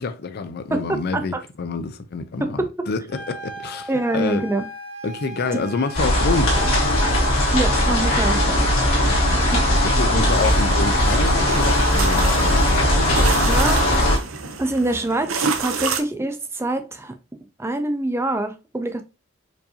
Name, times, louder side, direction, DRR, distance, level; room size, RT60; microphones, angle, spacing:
voice 1, 0.0-4.4 5.0-6.7 9.0-13.6, left 4 dB, 50° left, 0.5 m, -28 dB
voice 2, 0.7-1.4 2.4-2.9 3.9-4.7 5.5-5.7 7.5-8.6 9.5-9.6 10.1-10.3 13.5-13.8 14.6-17.1 17.6-19.0, right 2 dB, 15° right, 0.4 m, -25 dB
Wind instrument woodwind instrument, 3.1-8.1, right 1 dB, 45° right, 1.3 m, -37 dB
sound 1, 5.9-14.2, left 1 dB, 80° left, 1.5 m, -19 dB
sound 2, 10.3-16.0, right 5 dB, 85° right, 0.6 m, -29 dB
4.6 x 2.6 x 2.7 m
head